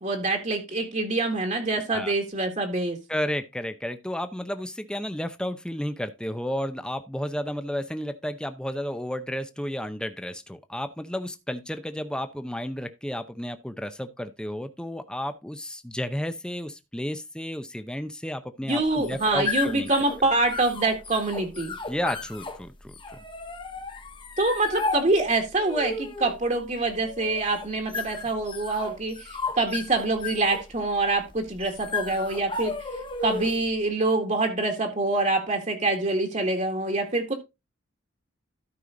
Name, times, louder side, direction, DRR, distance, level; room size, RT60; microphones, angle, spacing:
voice 1, 0.0-3.0 18.7-21.8 24.4-32.7 33.2-37.3, right 2 dB, 40° right, 1.7 m, -25 dB
voice 2, 3.1-19.9 21.9-23.2, equal, 5° left, 0.7 m, -32 dB
sound 1, 18.8-33.7, left 3 dB, 25° left, 1.2 m, -35 dB
13.0 x 5.6 x 3.8 m
head